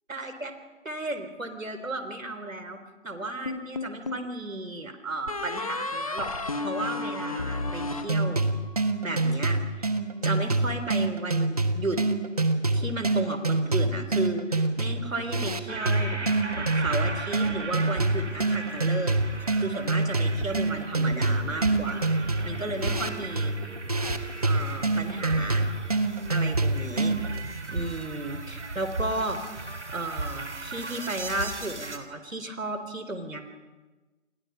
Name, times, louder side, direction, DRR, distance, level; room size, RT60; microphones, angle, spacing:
voice 1, 0.1-0.5 0.8-2.8 3.0-6.3 6.6-8.4 9.0-9.9 10.2-12.0 12.7-16.2 16.5-19.2 19.6-22.1 22.4-23.5 24.4-25.7 26.3-27.2 27.7-29.4 29.9-33.4, right 2 dB, 80° right, 8 dB, 4.0 m, -34 dB
sound 1, 3.5-4.3 5.3-8.8, left 2 dB, 25° left, 1.3 m, -33 dB
sound 2, 8.1-27.4, right 2 dB, 30° right, 1.2 m, -26 dB
sound 3, 15.7-32.0, right 3 dB, 60° right, 3.4 m, -36 dB
29.5 x 25.0 x 5.8 m, 1.2 s
figure-of-eight pair, 165°, 39 cm